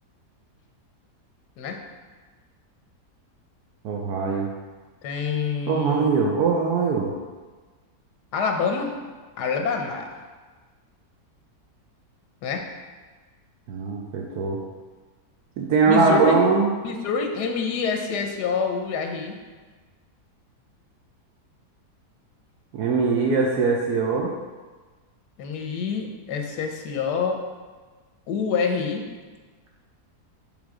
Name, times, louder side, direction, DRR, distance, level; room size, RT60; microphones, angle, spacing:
voice 1, 3.8-4.5 5.7-7.1 13.7-14.6 15.6-16.7 22.7-24.3, right 4 dB, 75° right, -1 dB, 1.2 m, -21 dB
voice 2, 5.0-6.2 8.3-9.0 9.4-10.1 12.4-12.7 15.9-16.5 16.8-19.4 25.4-27.4 28.3-29.0, left 5 dB, 85° left, 3 dB, 1.4 m, -26 dB
7.3 x 3.4 x 4.8 m, 1.4 s
omnidirectional pair, 1.7 m